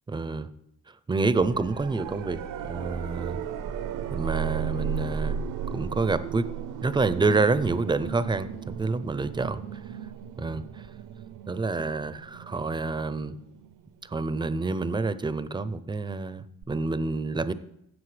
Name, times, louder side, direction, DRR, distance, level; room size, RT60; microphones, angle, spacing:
voice 1, 0.1-0.5 1.1-3.4 4.1-5.4 5.7-6.5 6.8-9.8 10.4-10.9 11.5-13.4 14.0-17.5, right 3 dB, 15° right, 15 dB, 0.4 m, -28 dB
sound 1, 1.4-14.3 16.6-16.7, right 8 dB, 70° right, 0.5 m, -35 dB
15.5 x 7.5 x 3.2 m, 0.76 s
cardioid pair, 130°, 34 cm